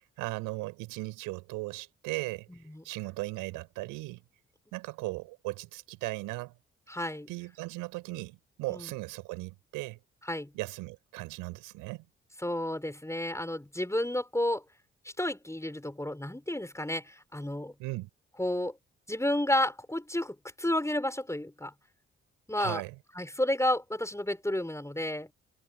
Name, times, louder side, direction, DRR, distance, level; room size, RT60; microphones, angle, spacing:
voice 1, 0.2-2.5 2.8-4.2 4.7-6.5 7.3-10.0 10.5-12.0 17.8-18.1 22.6-22.9, right 22 dB, 80° right, 7.9 m, -37 dB
voice 2, 2.5-2.8 6.9-7.3 8.7-8.9 10.2-10.5 12.4-14.6 15.2-17.7 18.4-18.8 19.1-21.7 22.5-22.8 23.1-25.3, left 1 dB, 10° left, 6.6 m, -31 dB
hypercardioid pair, 45°, 32 cm